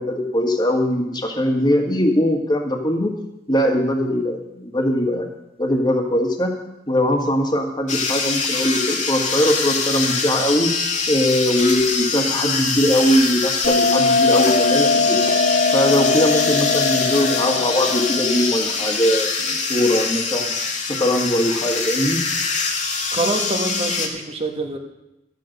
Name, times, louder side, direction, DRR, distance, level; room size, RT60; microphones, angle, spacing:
voice 1, 0.0-3.1 3.5-5.3 5.6-6.5 6.9-10.7 11.1-15.2 15.7-20.5 20.8-22.2, equal, 25° left, 3 dB, 1.7 m, -21 dB
sound 1, 7.9-24.1, left 4 dB, 45° left, 1.8 m, -24 dB
Bell, 13.6-18.7, left 4 dB, 70° left, 1.6 m, -20 dB
voice 2, 23.1-24.8, right 2 dB, 35° right, 4 dB, 1.4 m, -25 dB
12.5 x 9.1 x 6.7 m, 0.90 s
head